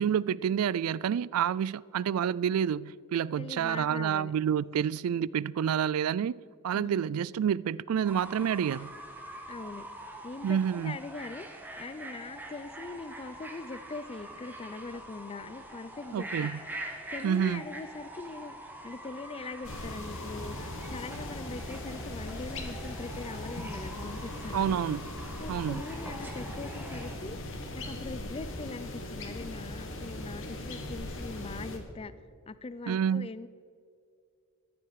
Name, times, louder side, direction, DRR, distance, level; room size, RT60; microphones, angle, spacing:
voice 1, 0.0-8.9 10.4-11.0 16.1-16.6 17.2-17.6 24.5-25.1 25.5-25.8 32.9-33.3, right 8 dB, 70° right, 0.3 m, -29 dB
voice 2, 3.4-4.3 4.7-4.8 6.7-7.2 9.5-9.9 10.2-11.5 11.8-16.5 17.1-18.6 18.8-24.8 25.4-27.4 27.7-32.1 32.5-33.5, left 3 dB, 25° left, 0.4 m, -42 dB
Fowl / Bird, 8.0-27.2, right 1 dB, 10° right, 1.4 m, -44 dB
sound 1, 19.6-31.8, left 1 dB, 60° left, 1.7 m, -39 dB
14.5 x 11.0 x 4.7 m
head